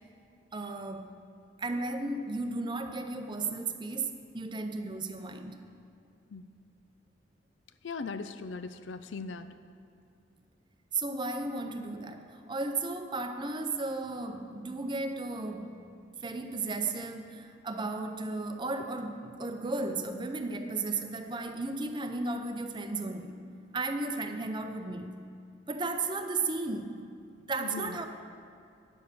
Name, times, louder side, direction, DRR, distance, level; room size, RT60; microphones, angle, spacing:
voice 1, 0.5-1.1 1.6-5.6 10.9-15.8 16.2-23.4 23.7-25.2 25.7-27.1 27.5-28.0, right 3 dB, 25° right, 7 dB, 0.6 m, -34 dB
voice 2, 7.8-9.5 27.6-28.0, left 4 dB, 80° left, 11 dB, 0.5 m, -39 dB
9.4 x 7.2 x 6.7 m, 2.5 s
head